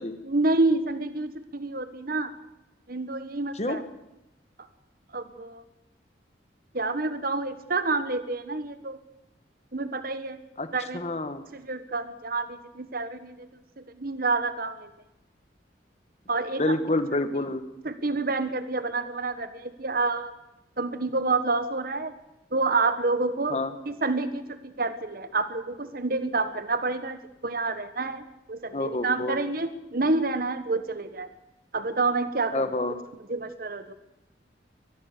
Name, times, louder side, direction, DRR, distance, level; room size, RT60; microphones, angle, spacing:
voice 1, 0.2-2.3 2.9-3.8 5.1-5.6 6.7-9.0 9.7-10.4 10.7-11.0 11.5-14.9 16.3-16.8 17.8-20.3 20.8-22.1 22.5-23.6 23.9-31.3 31.7-32.6 33.3-33.9, right 3 dB, 55° right, 11 dB, 1.5 m, -28 dB
voice 2, 10.9-11.4 16.6-17.6 23.5-23.7 28.7-29.4 32.5-33.0, left 2 dB, 35° left, 10 dB, 1.8 m, -28 dB
23.5 x 19.0 x 6.9 m, 0.91 s
head